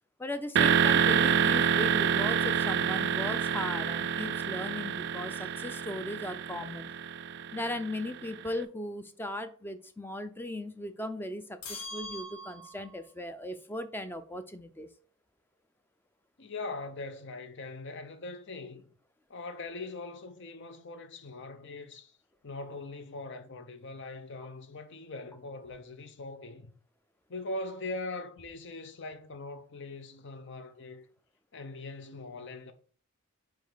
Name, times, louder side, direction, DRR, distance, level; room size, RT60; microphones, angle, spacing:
voice 1, 0.2-6.9 7.5-14.9, left 1 dB, 10° left, 0.5 m, -37 dB
sound 1, 0.6-8.3, right 8 dB, 55° right, 0.4 m, -27 dB
sound 2, 11.6-13.0, left 1 dB, 80° left, 1.4 m, -42 dB
voice 2, 16.4-18.9 19.3-22.1 22.4-26.7 27.3-31.0 31.5-32.7, left 2 dB, 55° left, 0.8 m, -41 dB
5.2 x 4.6 x 3.9 m
head